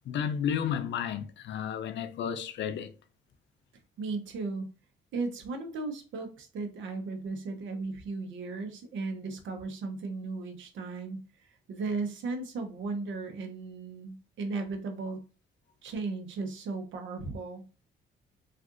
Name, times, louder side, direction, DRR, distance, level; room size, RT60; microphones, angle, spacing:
voice 1, 0.1-2.9, left 8 dB, 65° left, 0.5 m, -32 dB
voice 2, 4.0-4.7 5.1-11.2 11.7-15.2 15.8-17.6, right 3 dB, 75° right, 0.8 m, -36 dB
3.6 x 2.5 x 2.4 m
cardioid pair, 90°, 20 cm